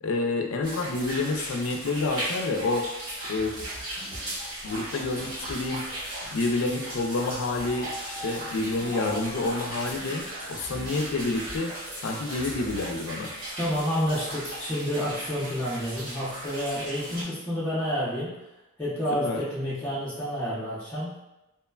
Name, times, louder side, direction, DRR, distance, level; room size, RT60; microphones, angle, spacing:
voice 1, 0.0-2.8 3.3-3.6 4.6-5.8 6.3-10.2 10.5-11.7 12.0-13.3 19.2-19.4, left 3 dB, 65° left, 3 dB, 0.4 m, -28 dB
sound 1, 0.6-17.2, right 1 dB, 85° right, 1.4 m, -37 dB
sound 2, 3.4-13.0, equal, 65° right, 0.8 m, -42 dB
voice 2, 13.6-18.3 18.8-21.2, equal, 10° left, -11 dB, 0.5 m, -29 dB
3.0 x 2.1 x 2.2 m, 0.94 s
head